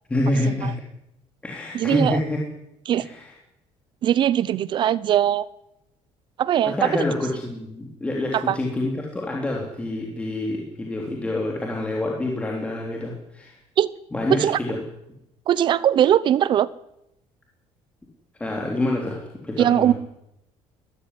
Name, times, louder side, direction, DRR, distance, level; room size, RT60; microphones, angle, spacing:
voice 1, 0.1-0.7 1.4-2.4 3.0-3.3 6.6-13.6 14.1-14.8 18.4-19.9, left 1 dB, 10° left, -1 dB, 3.4 m, -27 dB
voice 2, 1.7-2.2 2.9-3.1 4.0-5.5 6.4-7.0 8.3-8.6 13.8-13.9 14.3-14.6 15.5-16.7 19.6-19.9, right 10 dB, 40° right, 19 dB, 0.8 m, -20 dB
22.5 x 14.0 x 9.9 m, 0.83 s
cardioid pair, 165°, 12 cm